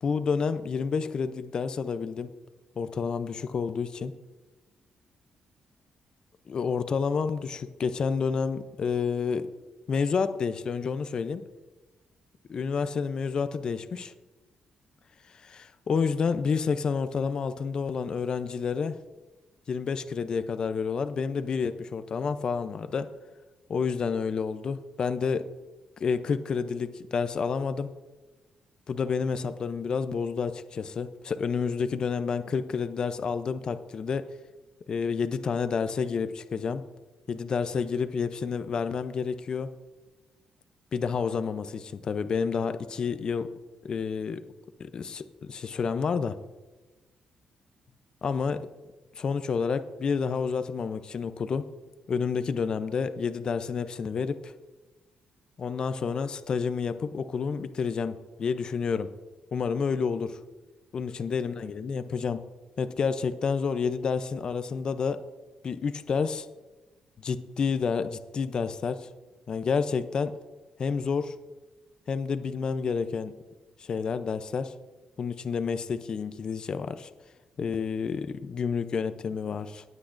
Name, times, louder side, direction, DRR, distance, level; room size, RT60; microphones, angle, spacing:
voice 1, 0.0-2.3 2.8-4.1 6.5-9.5 9.9-11.4 12.5-14.1 15.3-19.0 19.7-23.1 23.7-25.5 26.0-27.9 28.9-34.3 34.9-36.8 37.3-39.7 40.9-43.5 43.8-44.4 44.8-46.4 48.2-48.7 49.2-51.7 52.1-54.5 55.6-59.1 59.5-60.4 60.9-62.4 62.8-65.2 65.6-66.5 67.2-69.1 69.5-70.3 70.8-71.3 72.1-73.3 73.8-74.7 75.2-77.1 77.6-79.8, left 5 dB, 40° left, 11 dB, 0.5 m, -29 dB
18.0 x 8.3 x 2.6 m, 1.2 s
cardioid pair, 150°, 2 cm